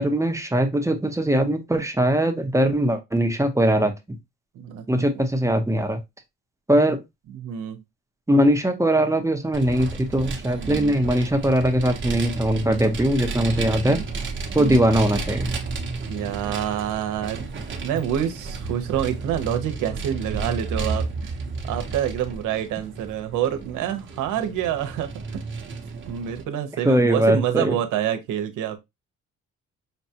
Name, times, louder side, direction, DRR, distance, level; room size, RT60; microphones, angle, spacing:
voice 1, 0.0-4.2 4.9-6.0 6.7-7.0 8.3-14.0 14.5-15.5 26.8-27.8, right 1 dB, 10° right, 0.8 m, -21 dB
voice 2, 4.5-5.1 7.3-7.8 10.6-11.0 12.6-12.8 13.9-14.0 14.6-14.8 16.1-21.3 21.7-25.4 26.1-28.8, right 10 dB, 90° right, 0.9 m, -27 dB
Vehicle, 9.5-26.4, right 3 dB, 40° right, 0.9 m, -32 dB
5.6 x 2.3 x 2.8 m
cardioid pair, 90°, 30 cm